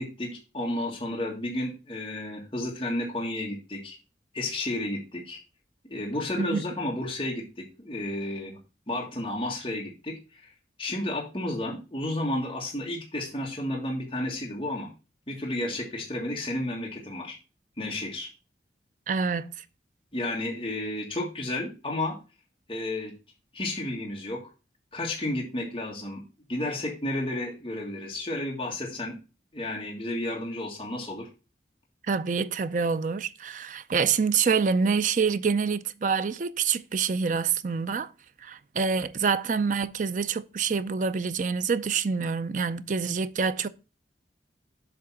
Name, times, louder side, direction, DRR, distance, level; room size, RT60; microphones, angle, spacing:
voice 1, 0.0-4.0 4.3-5.4 5.8-8.6 8.9-10.5 10.8-14.9 15.3-17.4 17.8-18.3 20.1-22.1 22.7-23.1 23.5-24.4 24.9-26.2 26.5-29.1 29.5-31.3, left 1 dB, 30° left, 1.7 m, -32 dB
voice 2, 19.1-19.6 32.1-38.1 38.4-43.7, right 5 dB, 45° right, 0.4 m, -26 dB
7.5 x 3.5 x 6.0 m
head